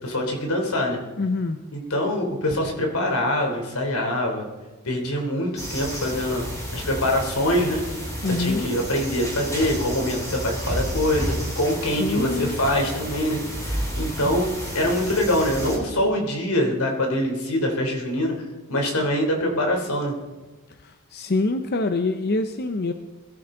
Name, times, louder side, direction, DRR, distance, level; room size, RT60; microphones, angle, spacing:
voice 1, 0.0-1.0 1.7-4.5 4.8-6.5 6.7-7.8 8.2-13.4 13.7-14.5 14.7-20.2, left 1 dB, 85° left, 2 dB, 3.5 m, -24 dB
voice 2, 1.2-1.6 8.2-8.8 12.0-12.6 20.8-22.9, left 3 dB, 45° left, 7 dB, 0.7 m, -25 dB
sound 1, 5.6-15.8, equal, 15° left, 4.5 m, -31 dB
22.0 x 13.5 x 3.9 m, 1.2 s
head